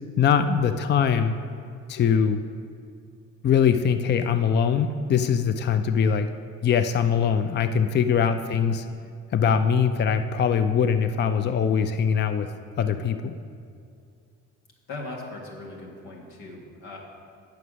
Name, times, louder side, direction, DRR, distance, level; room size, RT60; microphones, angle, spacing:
voice 1, 0.2-1.4 1.9-2.4 3.4-6.3 6.6-8.8 9.3-12.5 12.8-13.3, left 7 dB, 35° left, 9 dB, 0.4 m, -22 dB
voice 2, 14.9-17.0, left 2 dB, 90° left, -1 dB, 1.7 m, -39 dB
7.9 x 5.9 x 6.2 m, 2.4 s
cardioid pair, 90°, 30 cm